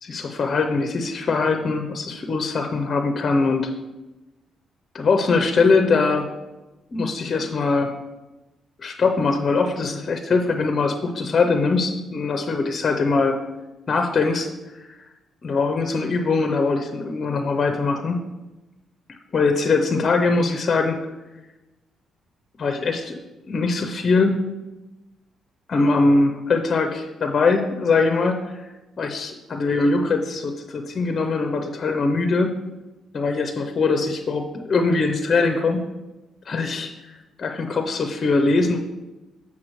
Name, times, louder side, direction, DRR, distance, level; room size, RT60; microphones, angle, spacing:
voice 1, 0.0-3.7 4.9-6.3 6.9-7.9 8.8-13.4 13.9-14.5 15.4-18.2 19.3-21.0 22.6-23.2 23.5-24.4 25.7-28.7 29.0-32.5 33.1-35.8 36.5-36.9 37.4-38.8, left 3 dB, 40° left, 5 dB, 0.6 m, -22 dB
7.6 x 5.7 x 3.1 m, 1.1 s
cardioid pair, 90°, 0 cm